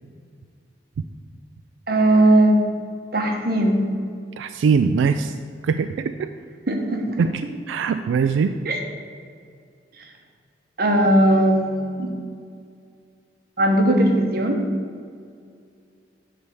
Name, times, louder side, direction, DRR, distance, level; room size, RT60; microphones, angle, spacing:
voice 1, 1.9-2.6 3.1-3.9 6.7-7.2 8.6-8.8 10.8-12.1 13.6-14.6, right 1 dB, 55° right, 2 dB, 1.0 m, -18 dB
voice 2, 4.4-5.4 5.6-6.3 7.2-7.4 7.7-8.5, right 5 dB, 90° right, 9 dB, 0.3 m, -21 dB
9.5 x 3.4 x 6.8 m, 2.2 s
head